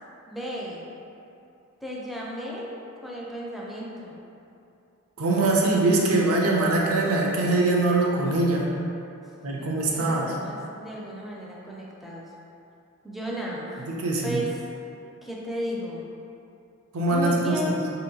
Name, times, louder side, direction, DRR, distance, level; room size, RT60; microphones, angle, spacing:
voice 1, 0.3-0.9 1.8-2.7 3.0-4.2 9.6-12.3 13.0-13.7 14.2-14.7 15.2-16.0 17.1-17.9, equal, ahead, -5 dB, 0.4 m, -34 dB
voice 2, 5.2-8.7 9.4-10.3 13.9-14.4 16.9-17.8, right 2 dB, 70° right, -2 dB, 0.5 m, -23 dB
4.0 x 2.7 x 2.7 m, 2.7 s
head